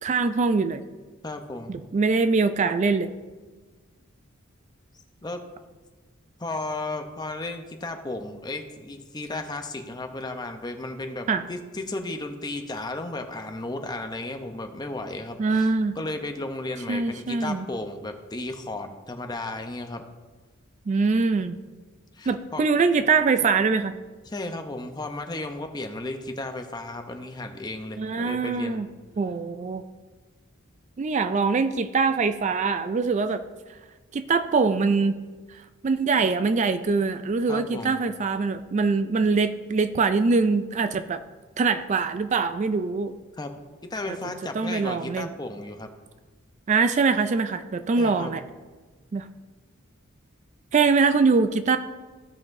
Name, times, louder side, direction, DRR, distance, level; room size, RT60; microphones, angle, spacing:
voice 1, 0.0-0.8 1.7-3.1 11.3-11.4 15.4-15.9 16.9-17.7 20.9-21.6 22.3-24.0 28.0-28.9 29.2-29.8 31.0-33.4 34.1-35.2 35.8-41.2 41.6-43.2 44.1-44.2 44.5-45.3 46.7-48.4 49.1-49.3 50.7-51.8, right 4 dB, 35° right, 10 dB, 0.3 m, -23 dB
voice 2, 1.2-1.8 5.2-5.4 6.4-20.0 22.1-22.7 24.3-28.8 37.5-38.0 43.4-43.5 43.9-45.9 48.0-48.4, left 2 dB, 20° left, 5 dB, 0.7 m, -34 dB
15.5 x 5.7 x 2.6 m, 1.3 s
head